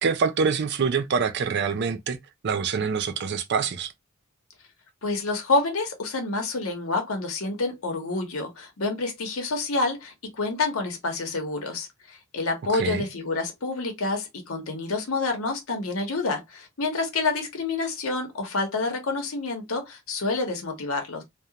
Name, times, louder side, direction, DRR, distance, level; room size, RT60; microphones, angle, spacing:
voice 1, 0.0-2.2 2.4-3.9 12.7-13.1, right 5 dB, 50° right, 0.4 m, -25 dB
voice 2, 5.0-21.2, left 3 dB, 80° left, 0.9 m, -28 dB
2.4 x 2.1 x 2.8 m
head